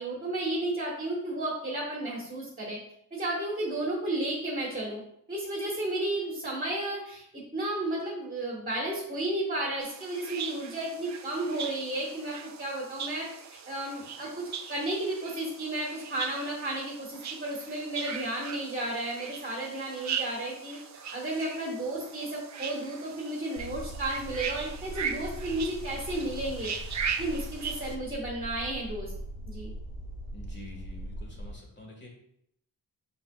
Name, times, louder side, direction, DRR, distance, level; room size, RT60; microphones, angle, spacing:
voice 1, 0.0-2.8 3.1-5.0 5.3-29.1 29.5-29.7, right 1 dB, 25° right, -3 dB, 1.2 m, -33 dB
sound 1, 9.8-27.9, right 6 dB, 50° right, 0.5 m, -39 dB
sound 2, 23.6-31.6, equal, 75° left, 1.4 m, -40 dB
voice 2, 30.3-32.1, left 2 dB, 30° left, 0 dB, 1.4 m, -47 dB
5.5 x 4.1 x 2.3 m, 0.73 s
cardioid pair, 85°, 36 cm